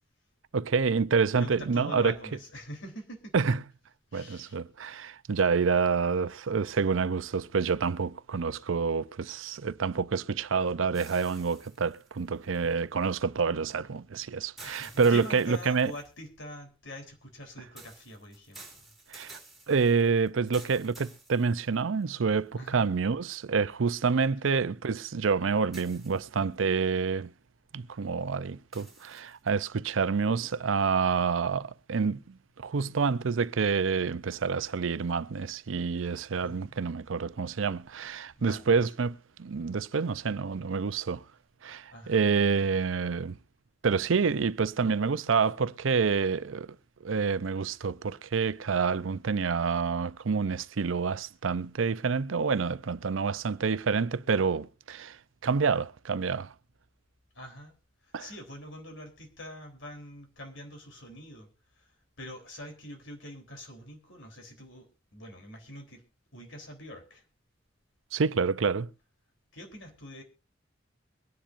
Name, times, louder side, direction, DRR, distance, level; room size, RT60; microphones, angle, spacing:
voice 1, 0.5-2.1 3.3-3.6 4.1-15.9 19.1-19.4 19.7-27.3 27.7-32.2 32.6-41.2 41.6-43.4 43.8-46.8 47.0-55.2 55.4-56.5 58.1-58.3 68.1-68.9, right 5 dB, 90° right, 0.6 m, -28 dB
voice 2, 1.4-3.3 4.1-4.6 14.6-18.6 22.6-22.9 24.4-24.7 36.4-36.8 38.4-38.8 41.9-42.2 44.2-44.3 57.3-57.7 58.0-61.5 61.8-66.0 66.3-67.2 69.5-70.2, left 1 dB, 70° left, 3.6 m, -45 dB
sound 1, 10.9-13.1 14.6-16.2 17.8-22.0 22.7-22.8 25.7-26.5 28.7-29.5, right 2 dB, ahead, 2.8 m, -52 dB
23.5 x 10.0 x 2.6 m
head